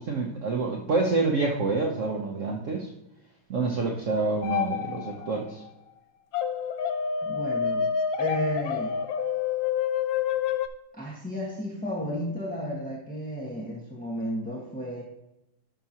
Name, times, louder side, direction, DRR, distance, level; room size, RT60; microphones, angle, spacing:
voice 1, 0.0-2.9 3.5-5.6, right 3 dB, 55° right, 0 dB, 1.0 m, -27 dB
sound 1, 4.4-5.4 6.3-10.7, left 7 dB, 80° left, 1.3 m, -28 dB
voice 2, 7.2-7.9 8.2-8.9 10.9-15.0, equal, 5° left, -5 dB, 1.1 m, -33 dB
11.5 x 6.0 x 2.9 m, 0.88 s
omnidirectional pair, 2.0 m